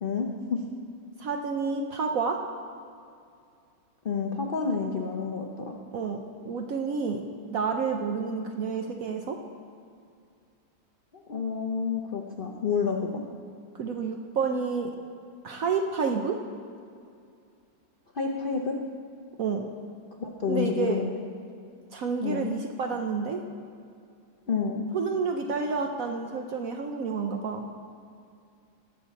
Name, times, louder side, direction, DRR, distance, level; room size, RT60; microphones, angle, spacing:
voice 1, 0.0-0.6 4.0-5.8 11.3-13.2 18.1-18.8 20.2-21.2 22.2-22.5 24.5-24.9, left 5 dB, 80° left, 0 dB, 0.4 m, -29 dB
voice 2, 1.2-2.4 5.9-9.4 13.7-14.9 15.4-16.4 19.4-19.7 20.5-21.0 21.9-23.4 24.9-27.7, right 5 dB, 70° right, 3 dB, 0.8 m, -29 dB
18.5 x 6.9 x 4.1 m, 2.4 s
omnidirectional pair, 2.2 m